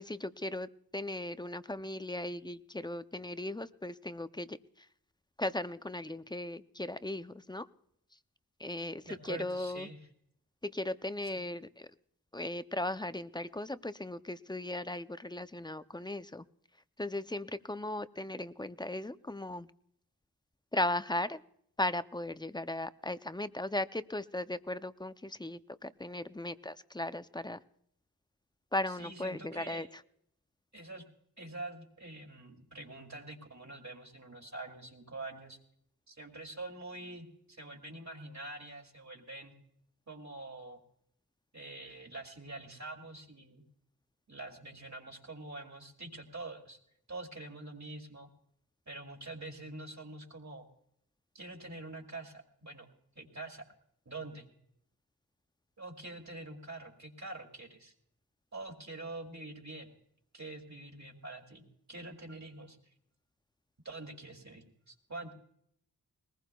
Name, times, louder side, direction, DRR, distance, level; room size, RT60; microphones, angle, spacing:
voice 1, 0.0-4.9 5.4-7.7 8.6-9.9 10.6-11.9 12.3-16.4 17.0-19.7 20.7-21.4 21.8-27.6 28.7-29.9, left 1 dB, 10° left, 13 dB, 0.5 m, -37 dB
voice 2, 9.0-10.0 29.0-29.9 30.7-31.0 31.4-35.6 36.1-39.5 40.1-40.8 41.5-43.6 44.3-46.8 47.1-48.3 48.9-50.7 51.3-52.9 53.2-53.7 54.1-54.5 55.8-57.9 58.5-59.9 60.3-62.9 63.8-65.3, right 2 dB, 50° right, 3 dB, 2.5 m, -45 dB
21.0 x 19.5 x 2.3 m, 0.71 s
wide cardioid pair, 75°, 37 cm